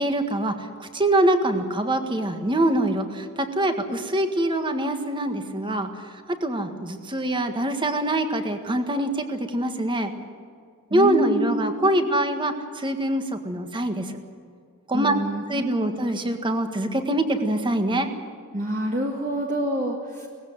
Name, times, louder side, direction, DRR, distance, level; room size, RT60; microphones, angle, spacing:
voice 1, 0.0-5.9 6.4-10.1 10.9-14.2 14.9-15.1 15.5-18.1, right 1 dB, 20° right, 7 dB, 1.7 m, -24 dB
voice 2, 10.9-11.9 14.9-16.0 18.5-20.3, equal, 40° right, -1 dB, 1.9 m, -27 dB
19.5 x 15.5 x 9.5 m, 2.3 s
head